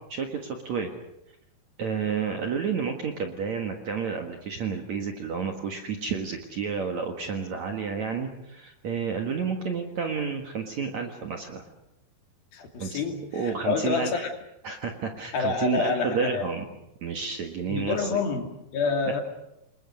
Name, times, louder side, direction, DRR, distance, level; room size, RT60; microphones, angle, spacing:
voice 1, 0.1-0.9 1.8-11.6 12.8-13.0 13.3-14.3 14.6-16.7 17.0-18.2, right 5 dB, 55° right, 4 dB, 2.3 m, -30 dB
voice 2, 12.5-14.3 15.3-16.5 17.7-19.2, left 4 dB, 60° left, 4 dB, 4.1 m, -28 dB
28.0 x 22.5 x 6.5 m, 0.85 s
omnidirectional pair, 5.0 m